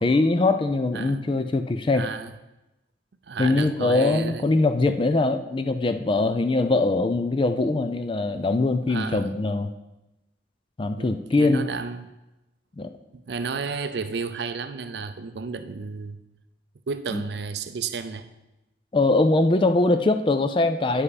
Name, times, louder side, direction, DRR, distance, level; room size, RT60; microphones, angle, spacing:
voice 1, 0.0-2.1 3.4-9.7 10.8-11.6 12.8-12.9 17.1-17.2 18.9-21.0, left 2 dB, 25° left, 9 dB, 0.4 m, -22 dB
voice 2, 1.9-2.3 3.2-4.5 8.9-9.3 11.0-12.1 13.1-16.2 16.9-18.3, right 5 dB, 65° right, 10 dB, 0.5 m, -32 dB
9.4 x 5.5 x 4.1 m, 0.97 s
head